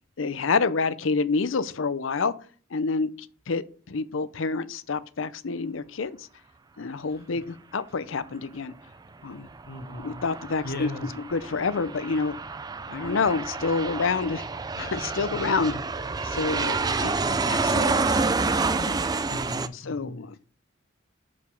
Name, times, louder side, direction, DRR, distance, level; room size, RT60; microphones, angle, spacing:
voice 1, 0.2-2.3 2.7-6.3 6.8-8.7 9.2-9.5 10.0-10.9 11.3-12.4 12.9-14.5 14.8-15.8 16.2-17.1 17.5-18.1 18.7-19.1 19.7-20.4, left 4 dB, 75° left, 0.6 m, -28 dB
Aircraft, 9.5-19.7, right 4 dB, 20° right, 0.3 m, -28 dB
voice 2, 9.7-10.2 10.6-11.1 15.3-15.4 19.3-20.4, left 2 dB, 50° left, 1.0 m, -37 dB
6.8 x 5.2 x 5.2 m
head